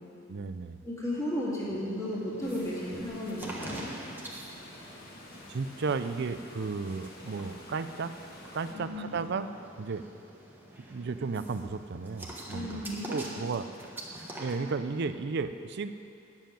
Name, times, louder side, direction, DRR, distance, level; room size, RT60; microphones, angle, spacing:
voice 1, 0.3-0.8 5.5-8.1 8.5-9.5 9.8-10.0 10.9-12.8 13.1-13.7 14.4-15.9, right 4 dB, 55° right, 11 dB, 0.5 m, -33 dB
voice 2, 0.8-3.9 8.7-9.3 12.5-13.1, left 1 dB, 15° left, -7 dB, 2.1 m, -34 dB
sound 1, 1.7-14.6, right 1 dB, 10° right, 1.3 m, -46 dB
Water, 2.4-8.7, left 1 dB, 50° left, 1.4 m, -50 dB
9.1 x 7.3 x 8.9 m, 2.7 s
head